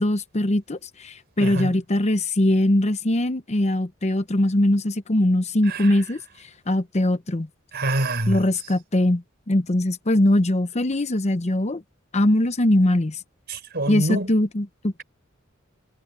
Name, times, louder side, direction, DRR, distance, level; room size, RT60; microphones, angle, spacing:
voice 1, 0.0-6.2 6.7-7.5 8.3-11.8 12.1-13.2 13.9-15.0, left 1 dB, 35° left, 0.9 m, -21 dB
voice 2, 1.4-1.7 5.7-5.9 7.7-8.4 13.5-14.3, right 1 dB, 55° right, 4.6 m, -26 dB
head